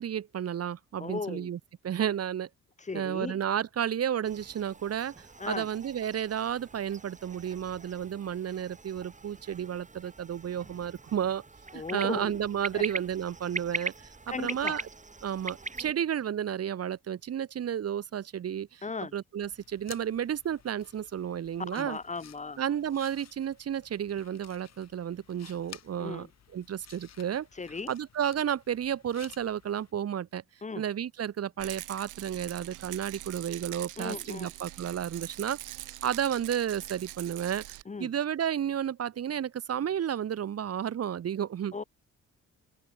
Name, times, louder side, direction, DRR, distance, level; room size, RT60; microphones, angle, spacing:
voice 1, 0.0-1.6 1.8-2.5 2.9-11.4 11.7-14.9 15.2-18.8 19.1-22.0 22.6-26.3 26.5-27.5 27.9-30.4 30.8-35.6 36.0-41.7, right 9 dB, 55° right, 1.5 m, -32 dB
voice 2, 1.0-1.5 2.8-3.4 5.4-5.7 11.7-12.4 12.7-12.9 14.3-14.8 18.8-19.1 21.6-22.6 26.0-26.3 27.5-27.9 30.6-30.8 34.0-34.5 37.9-38.1 41.7-41.8, left 4 dB, 25° left, 1.2 m, -36 dB
sound 1, 4.2-15.9, right 3 dB, 25° right, 7.4 m, -42 dB
sound 2, 19.4-29.9, left 9 dB, 60° left, 4.4 m, -54 dB
Rattle, 31.6-37.8, right 16 dB, 85° right, 1.3 m, -43 dB
open air
cardioid pair, 90°, 30 cm